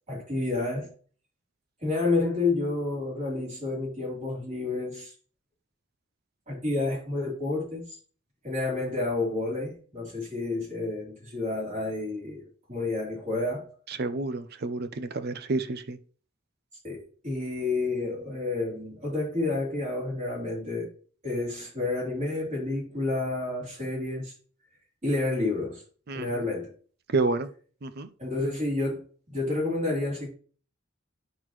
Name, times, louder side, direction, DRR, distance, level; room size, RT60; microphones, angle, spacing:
voice 1, 0.1-0.9 1.8-5.1 6.5-7.8 8.4-13.7 16.8-20.9 21.2-24.3 25.0-25.8 26.1-26.7 28.2-29.0 29.3-30.3, left 2 dB, 35° right, 3.7 m, -30 dB
voice 2, 13.9-16.0 26.1-26.4 27.1-27.5 27.8-28.1, right 3 dB, 55° right, 0.6 m, -29 dB
9.2 x 6.0 x 3.1 m
head